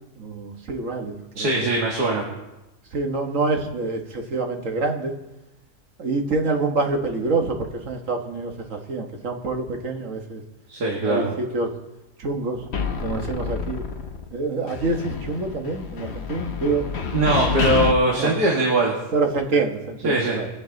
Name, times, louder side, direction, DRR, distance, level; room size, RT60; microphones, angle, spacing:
voice 1, 0.2-1.2 1.6-1.7 2.9-5.1 6.0-10.4 11.0-11.7 12.2-12.7 13.0-13.8 14.3-16.9 18.1-18.3 19.1-20.5, right 3 dB, 55° right, 3 dB, 1.7 m, -26 dB
voice 2, 1.4-2.3 10.7-11.3 17.1-18.9 20.0-20.4, right 2 dB, 80° right, -2 dB, 2.4 m, -21 dB
sound 1, 12.7-14.4 14.7-17.9, left 5 dB, 45° left, 1.1 m, -28 dB
22.0 x 9.3 x 4.0 m, 0.99 s
omnidirectional pair, 1.7 m